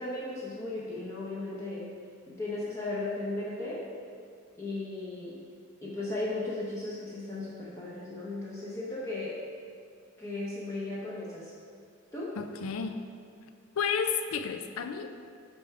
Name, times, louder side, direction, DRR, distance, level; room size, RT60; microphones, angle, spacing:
voice 1, 0.0-1.9 2.3-3.8 4.6-5.4 5.8-9.4 10.2-11.5 12.1-12.4, left 2 dB, 15° left, -8 dB, 0.8 m, -36 dB
voice 2, 12.4-13.0 13.8-15.1, left 6 dB, 80° left, 8 dB, 0.4 m, -31 dB
8.3 x 3.5 x 4.7 m, 2.2 s
head